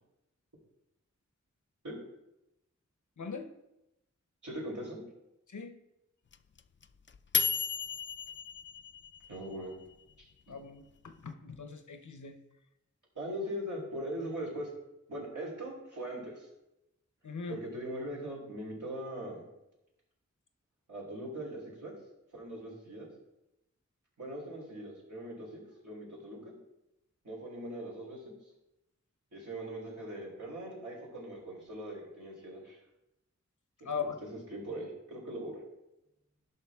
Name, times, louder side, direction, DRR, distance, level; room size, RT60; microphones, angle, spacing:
voice 1, 3.2-3.5 5.5-5.7 10.5-12.4 17.2-17.6 33.8-34.1, left 6 dB, 75° left, 8 dB, 0.8 m, -40 dB
voice 2, 4.4-5.0 9.3-9.8 10.5-10.6 13.2-14.7 15.1-16.5 17.5-19.4 20.9-21.9 22.3-23.1 24.2-26.5 27.2-28.3 29.3-32.8 33.9-35.6, right 1 dB, 80° right, -5 dB, 3.4 m, -41 dB
sound 1, 6.3-9.5, left 5 dB, 40° left, 0.4 m, -33 dB
11.0 x 5.5 x 3.5 m, 0.89 s
wide cardioid pair, 40°, 30 cm